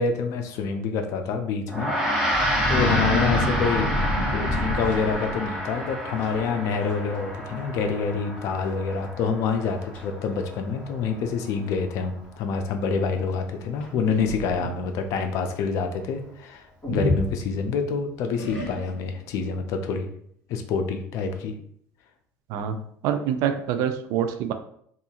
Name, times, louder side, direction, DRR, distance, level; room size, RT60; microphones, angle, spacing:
voice 1, 0.0-20.1 20.5-21.5, left 5 dB, 65° left, 6 dB, 0.4 m, -27 dB
Gong, 1.7-11.3, equal, ahead, 0.9 m, -29 dB
sound 1, 2.3-5.6 6.2-6.5 6.8-7.2 7.5-7.6 8.4-8.5 9.0-9.1 9.6-10.0 10.9-11.0 13.8-14.8 16.8-17.9 18.4-19.1, left 1 dB, 20° left, 1.5 m, -28 dB
voice 2, 22.5-24.5, right 9 dB, 75° right, 8 dB, 0.4 m, -26 dB
2.7 x 2.4 x 2.8 m, 0.65 s
cardioid pair, 120°, 6 cm